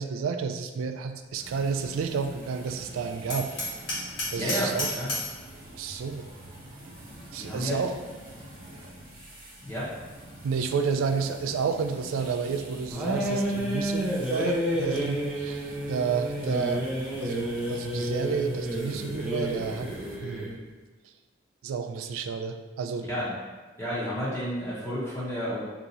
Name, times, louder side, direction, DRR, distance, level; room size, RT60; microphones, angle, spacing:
voice 1, 0.0-3.5 4.3-4.9 5.7-6.3 7.3-7.9 10.4-16.8 17.2-20.0 20.2-20.5 21.6-23.1, right 5 dB, 85° right, 7 dB, 0.3 m, -30 dB
sound 1, 1.4-20.2, right 1 dB, 45° right, 0.9 m, -46 dB
Hammer, 3.3-5.4, left 1 dB, 65° left, 1.3 m, -32 dB
voice 2, 4.3-5.2 7.3-7.8 9.6-9.9 23.0-23.3 23.8-25.6, equal, 15° left, -10 dB, 0.8 m, -31 dB
sound 2, 12.9-20.6, equal, 5° right, 0.5 m, -30 dB
2.8 x 2.4 x 4.0 m, 1.3 s
head